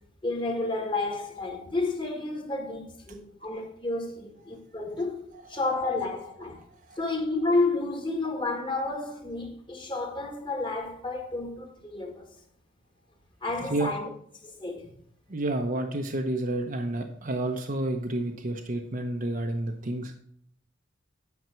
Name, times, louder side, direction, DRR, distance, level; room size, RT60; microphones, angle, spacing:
voice 1, 0.2-6.6 7.0-12.2 13.4-14.1 14.4-14.9, left 2 dB, 25° left, 1.8 m, -31 dB
voice 2, 15.3-20.1, right 1 dB, 45° right, 0.8 m, -30 dB
9.4 x 5.7 x 5.8 m
head